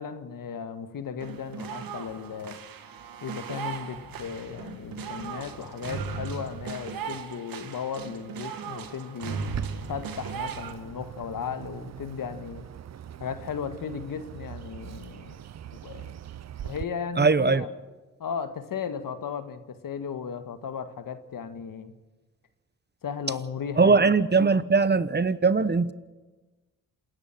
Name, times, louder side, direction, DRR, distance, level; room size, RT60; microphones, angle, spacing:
voice 1, 0.0-2.6 3.2-9.4 9.9-12.7 13.2-15.4 15.8-16.1 16.6-17.7 18.2-21.9 23.0-24.0, left 7 dB, 65° left, 9 dB, 1.8 m, -35 dB
sound 1, 1.2-10.7, right 6 dB, 70° right, 1.9 m, -37 dB
Boom, 3.9-7.0, left 3 dB, 85° left, 4.2 m, -51 dB
Bird, 9.4-16.8, right 10 dB, 50° right, 0.7 m, -41 dB
voice 2, 17.2-17.6 23.8-25.9, right 4 dB, 30° right, 16 dB, 1.0 m, -21 dB
27.5 x 10.5 x 9.3 m, 1.2 s
supercardioid pair, 50°, 35 cm